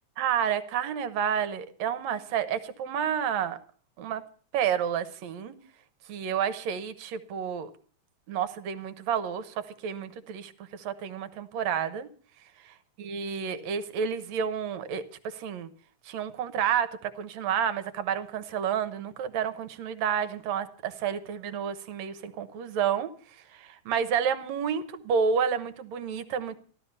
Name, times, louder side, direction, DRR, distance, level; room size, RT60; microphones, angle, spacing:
voice 1, 0.2-3.6 4.0-4.2 4.5-5.5 6.1-7.7 8.3-12.1 13.0-15.7 16.1-23.1 23.5-26.6, right 8 dB, 70° right, 2.2 m, -30 dB
14.0 x 13.5 x 5.4 m
omnidirectional pair, 3.4 m